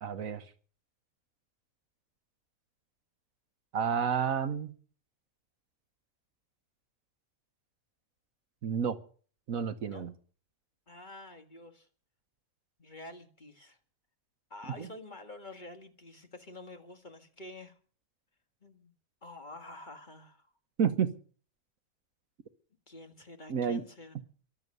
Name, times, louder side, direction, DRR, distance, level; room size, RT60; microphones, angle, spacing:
voice 1, 0.0-0.4 3.7-4.7 8.6-9.0 9.5-10.1 14.8-14.9 20.8-21.1 23.5-23.8, right 7 dB, 65° right, 12 dB, 1.4 m, -30 dB
voice 2, 10.9-11.9 12.8-13.8 14.5-17.8 18.6-18.9 19.2-20.5 22.9-24.2, left 2 dB, 30° left, 6 dB, 2.0 m, -48 dB
23.5 x 8.2 x 6.7 m, 0.43 s
omnidirectional pair, 1.5 m